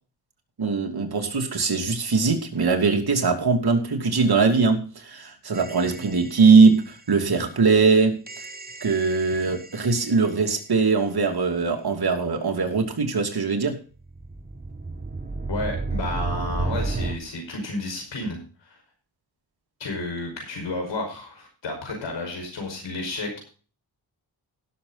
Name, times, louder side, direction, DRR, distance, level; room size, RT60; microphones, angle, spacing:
voice 1, 0.6-8.2 8.8-13.8, right 4 dB, 60° right, 4 dB, 2.8 m, -21 dB
sound 1, 5.5-6.6 8.3-10.1 14.0-17.2, right 3 dB, 20° right, 1.2 m, -32 dB
voice 2, 15.5-18.8 19.8-23.4, left 2 dB, 85° left, 2 dB, 5.5 m, -32 dB
17.0 x 7.1 x 4.0 m, 0.38 s
cardioid pair, 55°, 43 cm